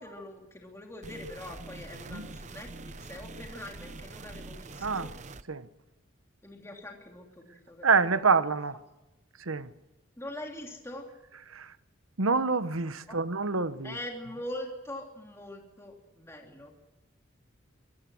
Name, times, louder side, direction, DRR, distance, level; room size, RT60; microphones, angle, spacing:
voice 1, 0.0-5.1 6.4-8.4 10.2-11.1 13.1-13.2 13.8-16.7, left 1 dB, 15° left, 3.0 m, -43 dB
sound 1, 1.0-5.4, right 2 dB, 35° right, 0.8 m, -44 dB
voice 2, 4.8-5.1 5.5-5.7 7.8-8.8 9.4-9.7 11.5-11.7 12.2-14.0, right 4 dB, 85° right, 1.1 m, -27 dB
25.0 x 18.5 x 6.3 m
head